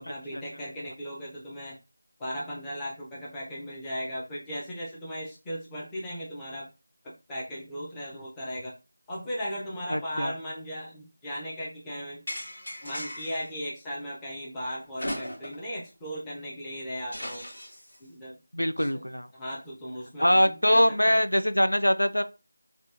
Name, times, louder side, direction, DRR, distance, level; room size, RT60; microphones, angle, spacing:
voice 1, 0.0-1.8 2.2-6.7 7.0-8.7 9.1-12.2 12.8-17.5 18.0-18.4 18.8-19.0 19.3-21.2, equal, 10° left, 0.7 m, -37 dB
voice 2, 9.9-10.3 18.5-19.3 20.2-22.2, equal, 90° left, 0.3 m, -23 dB
sound 1, 12.3-13.5 15.0-15.7 16.1-16.2 17.1-18.0, equal, 45° left, 1.8 m, -37 dB
4.3 x 2.4 x 2.8 m
figure-of-eight pair, 165°, 0 cm